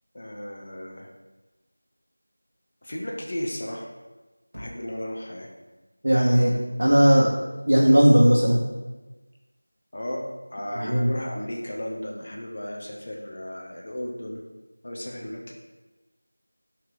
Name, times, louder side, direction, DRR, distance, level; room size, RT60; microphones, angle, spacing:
voice 1, 0.1-1.1 2.8-3.9 4.5-5.5 9.9-14.4 14.8-15.5, left 1 dB, 30° left, -1 dB, 0.4 m, -34 dB
voice 2, 6.0-6.5 6.8-7.3 7.7-8.6 10.8-11.1, equal, 65° right, -6 dB, 0.7 m, -17 dB
5.1 x 2.9 x 3.1 m, 1.2 s
figure-of-eight pair, 180°, 0 cm